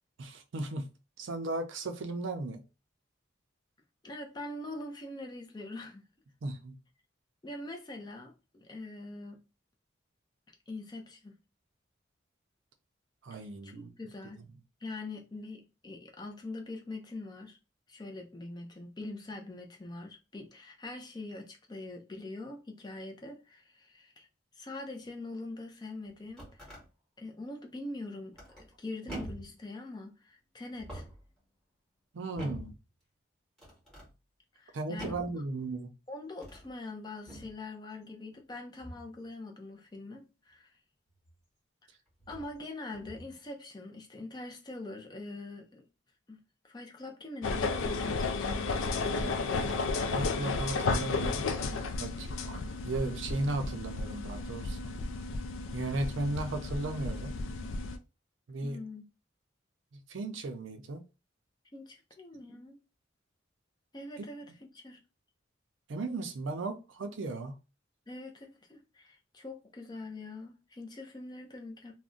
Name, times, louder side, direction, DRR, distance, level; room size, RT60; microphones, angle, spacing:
voice 1, 0.2-0.9 1.2-2.6 6.4-6.8 13.2-13.9 32.1-32.7 34.7-35.9 49.1-51.5 52.0-54.9 55.7-57.3 58.5-58.8 59.9-61.0 64.2-64.3 65.9-67.6, right 2 dB, 75° right, 0.5 m, -36 dB
voice 2, 4.0-6.1 7.4-9.4 10.5-11.4 13.4-14.4 14.8-17.6 17.9-24.3 24.6-26.7 27.2-28.4 28.8-31.0 34.5-35.2 36.1-40.7 42.3-45.8 46.3-46.4 46.6-48.9 58.6-59.0 61.7-62.8 63.9-65.0 68.1-71.9, left 2 dB, 20° left, 0.4 m, -43 dB
sound 1, 26.1-26.8 28.3-28.7 29.1-29.6 30.7-31.3 32.4-32.8 33.6-34.1 35.0-35.4 36.3-36.7 37.3-37.6 38.8-39.1 41.2-41.3 42.2-42.5 42.9-43.3, right 1 dB, ahead, 1.1 m, -44 dB
sound 2, 47.4-58.0, left 3 dB, 85° left, 0.4 m, -33 dB
2.4 x 2.1 x 3.7 m
head